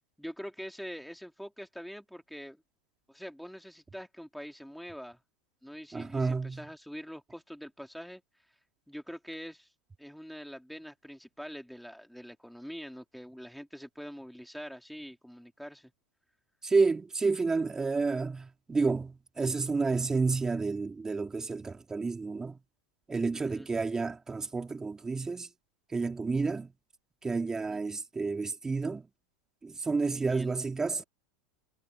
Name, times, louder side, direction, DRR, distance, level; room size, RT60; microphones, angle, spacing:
voice 1, 0.2-2.6 3.1-5.2 5.6-8.2 8.9-9.7 10.0-15.9 23.3-23.7 27.7-27.8 30.1-30.6, equal, ahead, 3.4 m, -44 dB
voice 2, 5.9-6.7 16.6-22.6 23.1-25.5 25.9-26.7 27.2-29.1 29.6-31.0, right 4 dB, 15° right, 3.5 m, -30 dB
hypercardioid pair, 105°, 4 cm